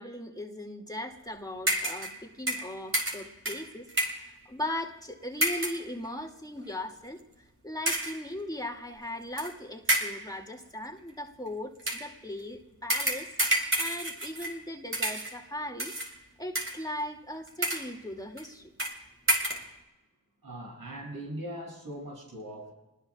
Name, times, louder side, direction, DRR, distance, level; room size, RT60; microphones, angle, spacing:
voice 1, 0.0-3.9 4.1-15.9 16.4-18.7, left 1 dB, 10° left, 1 dB, 2.6 m, -38 dB
sound 1, 1.7-2.2 2.5-4.3 5.4-5.9 6.6-6.7 7.9-8.3 9.4-9.5 9.9-10.3 11.8-12.1 12.9-14.6 14.9-15.4 15.8-16.1 16.5-17.0 17.5-18.0 18.4-18.5 18.8-19.0 19.3-19.7, right 1 dB, 35° right, 4.4 m, -30 dB
voice 2, 20.4-22.7, right 1 dB, 75° right, -2 dB, 7.7 m, -40 dB
28.5 x 20.5 x 2.5 m, 1.1 s
cardioid pair, 55°, 35 cm